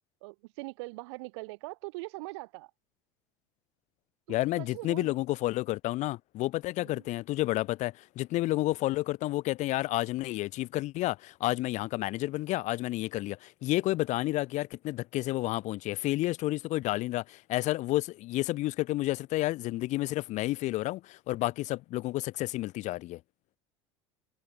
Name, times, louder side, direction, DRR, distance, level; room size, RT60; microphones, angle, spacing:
voice 1, 0.2-2.7 4.3-5.1 6.8-7.0, right 26 dB, 70° right, 7.8 m, -42 dB
voice 2, 4.3-23.2, left 17 dB, 55° left, 2.1 m, -30 dB
hypercardioid pair, 85°, 15 cm